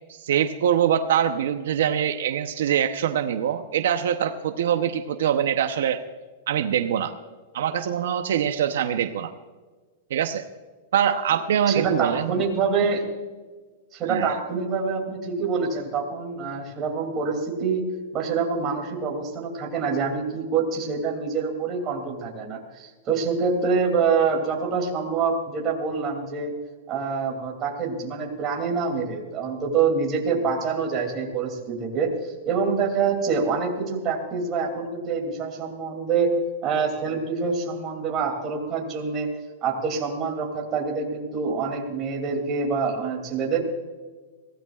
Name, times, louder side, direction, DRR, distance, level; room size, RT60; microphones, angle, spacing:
voice 1, 0.1-6.0 6.5-7.1 7.5-9.3 10.1-10.4 10.9-12.4 14.1-14.3, right 9 dB, 75° right, 8 dB, 0.8 m, -23 dB
voice 2, 11.7-13.0 13.9-17.8 18.1-26.5 26.9-36.3 36.6-39.3 39.6-43.6, right 5 dB, 25° right, 1 dB, 2.8 m, -26 dB
24.0 x 16.5 x 2.4 m, 1.4 s
supercardioid pair, 170°, 0 cm